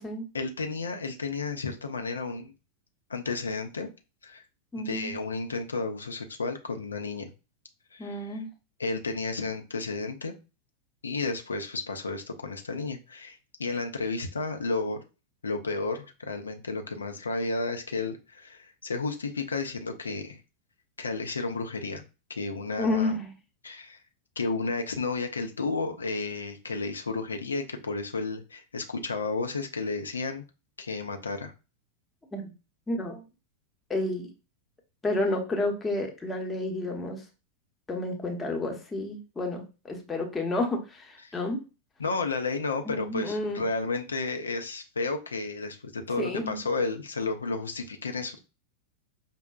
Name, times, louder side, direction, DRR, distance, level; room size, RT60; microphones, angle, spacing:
voice 1, 0.3-2.5 3.1-3.9 4.2-4.4 4.8-7.3 7.9-8.4 8.8-10.3 11.0-15.0 15.4-20.4 21.0-22.0 22.3-23.1 23.6-24.0 24.4-30.4 30.8-31.5 41.2-41.3 42.0-48.4, left 3 dB, 75° left, 6 dB, 0.4 m, -32 dB
voice 2, 4.7-5.2 8.0-8.5 22.8-23.3 32.3-32.5 32.9-33.2 33.9-34.3 35.0-37.2 37.9-41.6 42.8-43.6 46.2-46.6, left 2 dB, 15° left, 1 dB, 0.8 m, -30 dB
5.2 x 2.1 x 2.3 m, 0.30 s
figure-of-eight pair, 90°, 0 cm